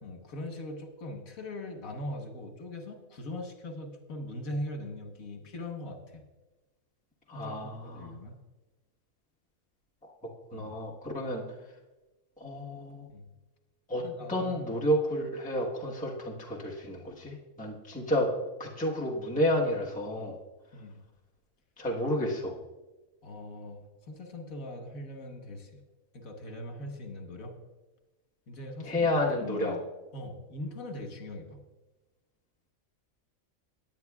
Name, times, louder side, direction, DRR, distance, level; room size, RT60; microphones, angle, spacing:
voice 1, 0.0-6.2 7.3-8.4 10.5-10.7 13.1-13.3 14.0-14.7 20.7-21.0 23.2-25.8 26.1-27.6 28.5-29.1 29.4-29.8 30.1-31.6, left 1 dB, 75° left, 5 dB, 1.7 m, -41 dB
voice 2, 7.3-8.1 10.5-11.4 12.4-13.1 13.9-14.0 14.3-18.3 18.6-20.4 21.8-22.6 28.9-29.8, equal, 5° left, -3 dB, 1.2 m, -30 dB
18.5 x 9.5 x 2.4 m, 1.1 s
omnidirectional pair, 1.5 m